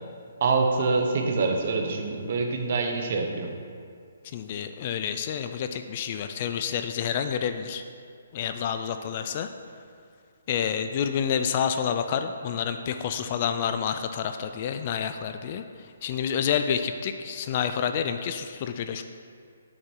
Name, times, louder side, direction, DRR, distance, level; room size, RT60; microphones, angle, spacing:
voice 1, 0.4-3.5, right 4 dB, 45° right, 3 dB, 1.0 m, -25 dB
voice 2, 4.3-7.8 8.3-9.5 10.5-15.6 16.0-19.0, left 8 dB, 30° left, 8 dB, 0.3 m, -28 dB
7.7 x 6.2 x 4.6 m, 2.3 s
hypercardioid pair, 165°, 0 cm